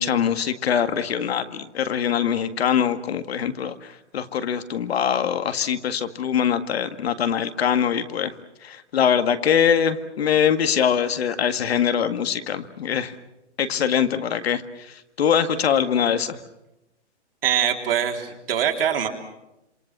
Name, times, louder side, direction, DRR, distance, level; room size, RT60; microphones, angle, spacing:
voice 1, 0.0-8.3 8.6-13.1 13.6-16.4, left 8 dB, 60° left, 9 dB, 2.0 m, -23 dB
voice 2, 17.4-19.1, right 9 dB, 55° right, 3 dB, 3.6 m, -23 dB
27.5 x 25.5 x 6.2 m, 0.92 s
hypercardioid pair, 165°, 35 cm